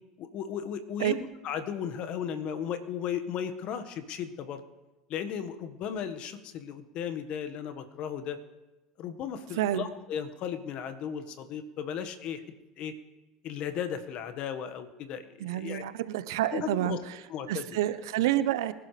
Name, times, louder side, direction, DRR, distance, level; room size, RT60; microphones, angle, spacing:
voice 1, 0.2-4.6 5.1-8.4 9.0-12.4 12.8-12.9 13.4-15.8 16.5-17.0 17.3-17.6, left 8 dB, 55° left, 9 dB, 1.5 m, -35 dB
voice 2, 15.4-17.0 17.5-18.7, right 13 dB, 75° right, 14 dB, 0.7 m, -28 dB
25.0 x 11.5 x 3.3 m, 1.0 s
hypercardioid pair, 80°, 2 cm